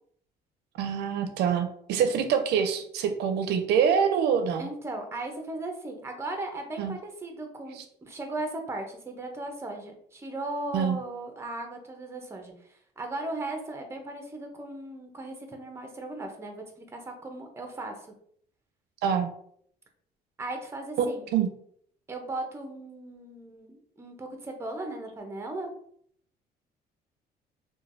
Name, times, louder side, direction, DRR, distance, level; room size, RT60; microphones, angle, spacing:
voice 1, 0.8-4.7 6.8-7.0 7.7-7.8 10.7-11.0 19.0-19.3 21.0-21.5, right 7 dB, 75° right, 7 dB, 0.4 m, -25 dB
voice 2, 4.6-12.5 13.0-16.6 16.9-18.0 20.4-21.2 22.1-25.7, right 2 dB, 15° right, 4 dB, 0.5 m, -37 dB
3.1 x 2.2 x 2.5 m, 0.64 s
cardioid pair, 110°, 17 cm